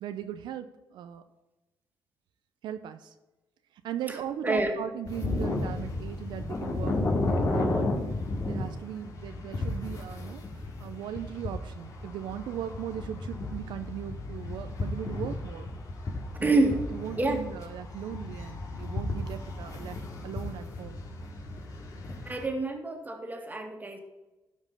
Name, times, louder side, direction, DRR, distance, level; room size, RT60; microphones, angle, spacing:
voice 1, 0.0-1.2 2.6-3.1 3.8-8.1 8.4-10.4 10.8-15.7 16.4-21.0, right 10 dB, 85° right, 9 dB, 0.6 m, -38 dB
voice 2, 4.4-4.8 16.4-16.8 17.2-17.4 22.3-24.0, right 2 dB, 20° right, 3 dB, 2.0 m, -27 dB
sound 1, 5.0-22.4, left 2 dB, 50° left, 2.5 m, -34 dB
12.5 x 5.3 x 5.4 m, 1.1 s
cardioid pair, 85°, 8 cm